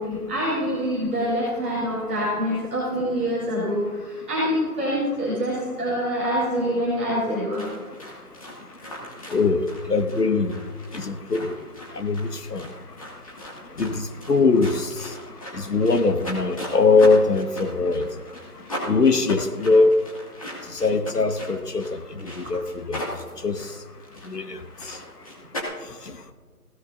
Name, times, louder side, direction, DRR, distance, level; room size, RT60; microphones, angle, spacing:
voice 1, 0.0-7.7 22.4-22.5, equal, 10° right, -14 dB, 2.4 m, -25 dB
sound 1, 7.5-25.6, equal, 20° left, 2.2 m, -38 dB
voice 2, 9.3-10.6 10.9-11.5 11.9-12.6 13.8-15.1 15.5-18.1 18.9-19.9 20.7-22.6 22.9-23.0 23.4-23.6 24.3-24.6, left 3 dB, 80° left, 8 dB, 1.5 m, -21 dB
21.5 x 17.0 x 2.7 m, 1.5 s
figure-of-eight pair, 170°, 46 cm